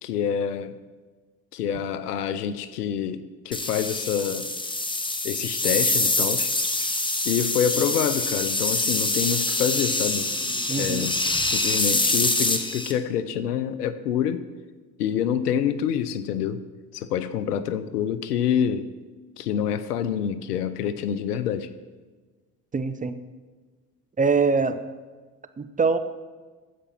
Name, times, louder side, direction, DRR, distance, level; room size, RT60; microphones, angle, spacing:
voice 1, 0.0-0.7 1.5-4.5 5.2-6.5 7.2-10.3 10.8-11.1 11.4-14.4 15.0-16.6 16.9-18.9 19.4-21.7, left 8 dB, 80° left, 13 dB, 0.7 m, -27 dB
sound 1, 3.5-12.9, left 2 dB, 10° left, 1.1 m, -25 dB
voice 2, 10.7-11.1 22.7-23.2 24.2-24.8 25.6-26.0, right 4 dB, 15° right, 10 dB, 0.7 m, -23 dB
15.0 x 5.2 x 5.9 m, 1.3 s
hypercardioid pair, 65°, 46 cm